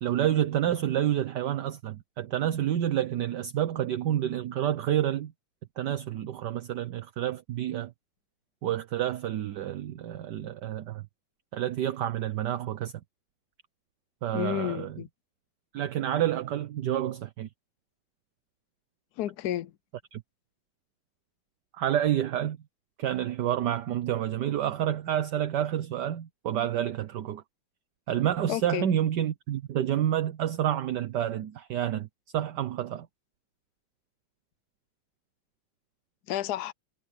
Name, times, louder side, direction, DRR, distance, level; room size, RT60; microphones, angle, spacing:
voice 1, 0.0-5.3 5.8-7.9 8.6-11.0 11.5-12.9 14.2-15.0 15.7-17.5 20.1-20.2 21.7-22.6 23.0-27.4 28.1-32.1 32.3-33.1, right 11 dB, 65° right, 1.4 m, -29 dB
voice 2, 14.3-15.1 19.2-19.7 28.5-28.9 36.3-36.7, left 12 dB, 65° left, 1.0 m, -31 dB
omnidirectional pair, 2.1 m